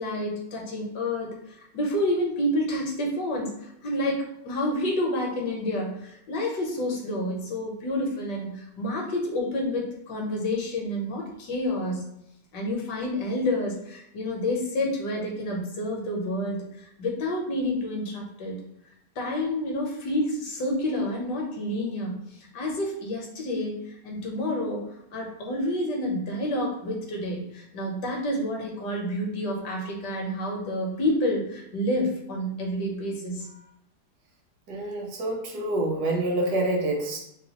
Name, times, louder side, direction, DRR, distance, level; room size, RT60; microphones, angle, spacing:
voice 1, 0.0-12.1 12.5-18.6 19.2-22.2 22.5-24.8 25.1-33.6, left 1 dB, 70° left, -1 dB, 1.4 m, -29 dB
voice 2, 34.7-37.2, right 1 dB, 70° right, 0 dB, 1.3 m, -27 dB
3.9 x 2.3 x 2.8 m, 0.77 s
omnidirectional pair, 1.9 m